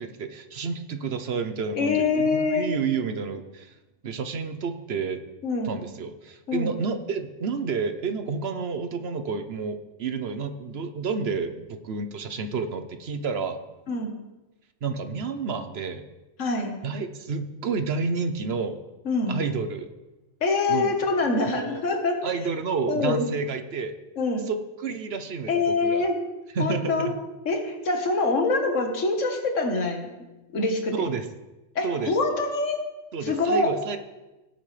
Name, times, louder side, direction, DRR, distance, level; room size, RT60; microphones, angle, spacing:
voice 1, 0.0-3.8 4.0-5.2 5.6-13.6 14.8-16.1 16.8-18.8 19.3-19.9 20.7-20.9 21.4-21.8 22.2-23.9 24.5-26.0 26.5-27.2 31.0-31.2 31.8-32.1 33.1-34.0, right 5 dB, 55° right, 8 dB, 1.0 m, -30 dB
voice 2, 1.7-2.7 5.4-5.8 6.5-6.8 13.9-14.1 16.4-16.8 19.1-19.4 20.4-22.2 22.9-23.3 24.2-24.5 25.5-26.2 26.6-27.1 27.5-30.1 30.5-31.2 31.8-32.8 33.2-33.7, left 3 dB, 75° left, 3 dB, 1.8 m, -25 dB
18.0 x 8.4 x 3.3 m, 1.1 s
omnidirectional pair, 1.3 m